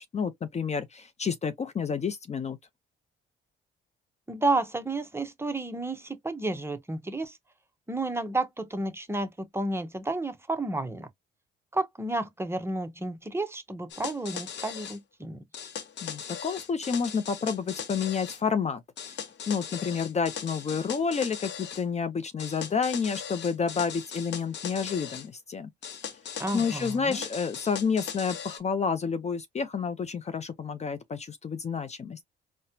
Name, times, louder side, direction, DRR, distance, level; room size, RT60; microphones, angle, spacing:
voice 1, 0.0-2.6 16.0-19.2 19.5-25.7 26.0-26.1 26.5-32.2, left 6 dB, 35° left, 0.5 m, -30 dB
voice 2, 4.3-7.4 7.9-11.1 11.7-15.4 26.4-27.2, right 2 dB, 10° right, 0.7 m, -31 dB
sound 1, 13.9-15.0 15.5-18.4 19.0-21.8 22.4-25.3 25.8-28.6, left 8 dB, 65° left, 0.8 m, -39 dB
4.1 x 2.1 x 2.6 m
cardioid pair, 90°, 20 cm